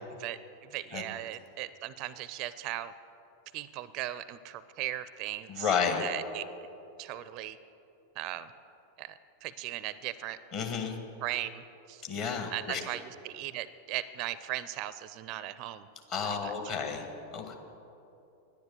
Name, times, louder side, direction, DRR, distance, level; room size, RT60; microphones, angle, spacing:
voice 1, 0.7-2.9 3.5-5.7 6.0-6.4 7.0-7.6 8.2-8.5 9.0-10.4 11.2-12.0 12.5-15.9 16.2-16.5, right 14 dB, 40° right, 16 dB, 0.4 m, -38 dB
voice 2, 5.5-6.0 10.5-11.0 12.0-12.8 16.1-17.1 17.3-17.6, left 6 dB, 40° left, 3 dB, 1.8 m, -31 dB
10.5 x 10.0 x 7.6 m, 2.9 s
figure-of-eight pair, 90°, 0 cm